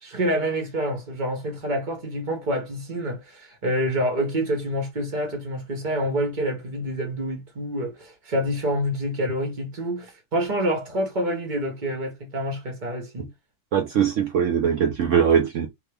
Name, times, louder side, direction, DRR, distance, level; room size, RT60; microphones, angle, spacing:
voice 1, 0.0-13.3, equal, 35° right, 1.1 m, -27 dB
voice 2, 13.7-15.7, right 7 dB, 65° right, 0.8 m, -21 dB
2.8 x 2.7 x 3.3 m
omnidirectional pair, 1.7 m